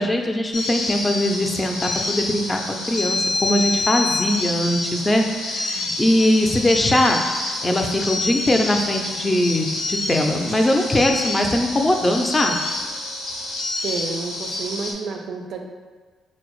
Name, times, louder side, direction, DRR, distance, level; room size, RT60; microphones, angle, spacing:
voice 1, 0.0-7.2 7.6-12.6, left 1 dB, 25° left, 3 dB, 0.4 m, -21 dB
sound 1, 0.5-14.9, left 2 dB, 70° left, 0.5 m, -27 dB
voice 2, 13.8-15.6, right 4 dB, 70° right, 2 dB, 0.4 m, -30 dB
4.2 x 2.0 x 3.0 m, 1.4 s
supercardioid pair, 55°, 0 cm